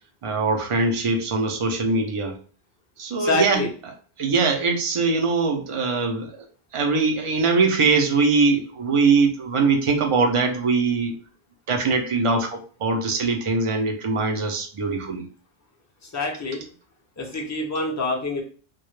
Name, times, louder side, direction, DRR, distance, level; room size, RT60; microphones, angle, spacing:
voice 1, 0.2-2.3 3.0-3.9 4.2-6.4 6.7-11.1 11.7-15.3, right 4 dB, 50° right, 3 dB, 0.4 m, -22 dB
voice 2, 3.2-3.7 16.1-16.6 17.2-18.4, left 2 dB, 25° left, 1 dB, 0.4 m, -26 dB
2.2 x 2.0 x 3.0 m, 0.40 s
omnidirectional pair, 1.1 m